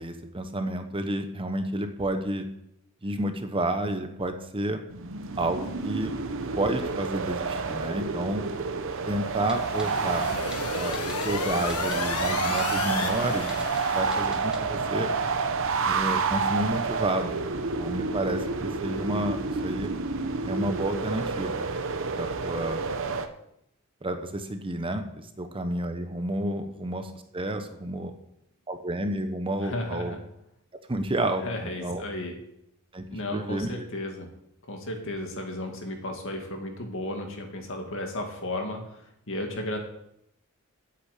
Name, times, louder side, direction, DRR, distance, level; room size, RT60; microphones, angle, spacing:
voice 1, 0.0-2.4 3.0-4.8 5.4-6.1 6.6-8.5 9.1-10.3 10.7-15.1 15.9-17.4 17.8-19.4 19.6-19.9 20.4-21.7 22.2-22.9 24.0-28.1 28.7-30.2 30.9-31.4 31.8-32.0 32.9-33.8, right 1 dB, 25° right, 7 dB, 1.0 m, -30 dB
sound 1, 4.9-23.3, right 4 dB, 60° right, 0.9 m, -29 dB
sound 2, 9.2-14.2, left 5 dB, 90° left, 1.3 m, -34 dB
Typing, 9.5-9.9 10.5-10.6 10.9-11.3 11.7-12.0 12.6-12.7 13.5-13.8 14.1-14.6 14.9-15.0, right 1 dB, 5° right, 1.7 m, -43 dB
voice 2, 29.6-30.2 31.4-32.4 33.1-34.3 34.7-39.0 39.3-39.8, left 1 dB, 60° left, 3 dB, 2.3 m, -34 dB
8.4 x 8.4 x 8.3 m, 0.79 s
head